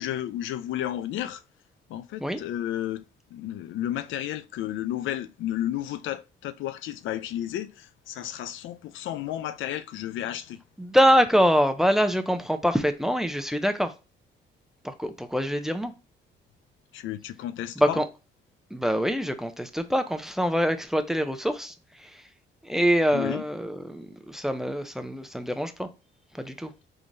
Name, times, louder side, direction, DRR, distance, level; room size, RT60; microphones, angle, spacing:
voice 1, 0.0-1.4 1.9-3.0 3.3-10.6 16.9-18.0 23.1-23.4, left 12 dB, 75° left, 0.4 m, -32 dB
voice 2, 10.8-13.9 14.8-15.9 17.8-18.1 18.7-22.2 22.6-25.9 26.4-26.7, equal, ahead, 0.5 m, -24 dB
3.7 x 2.9 x 2.6 m
cardioid pair, 90°, 20 cm